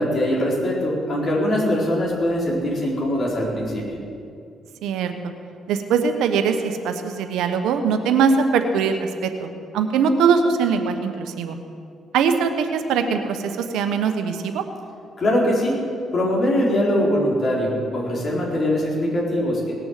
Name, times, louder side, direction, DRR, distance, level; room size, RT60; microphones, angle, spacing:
voice 1, 0.0-3.8 15.2-15.8 16.1-19.7, left 1 dB, 45° left, -4 dB, 4.5 m, -22 dB
voice 2, 4.8-5.3 5.7-11.6 12.1-14.6, right 6 dB, 90° right, 7 dB, 1.1 m, -21 dB
18.5 x 7.0 x 7.5 m, 2.5 s
cardioid pair, 90°, 0 cm